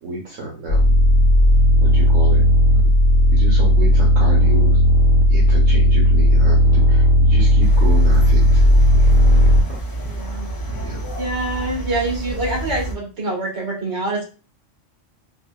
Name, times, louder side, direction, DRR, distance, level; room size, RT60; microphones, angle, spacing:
voice 1, 0.0-1.0 1.8-2.5 2.7-2.9 3.3-4.8 5.3-8.6 9.9-10.0 10.7-11.1, right 3 dB, 80° right, -3 dB, 1.1 m, -31 dB
sound 1, 0.7-9.6, equal, 70° left, 0.9 m, -14 dB
Riveside at night - Maranduba São Paulo, 7.6-12.9, right 1 dB, 30° left, 0.4 m, -29 dB
voice 2, 10.0-10.5 11.2-14.2, right 2 dB, 60° right, -3 dB, 1.6 m, -25 dB
4.2 x 2.2 x 2.2 m, 0.34 s
omnidirectional pair, 1.3 m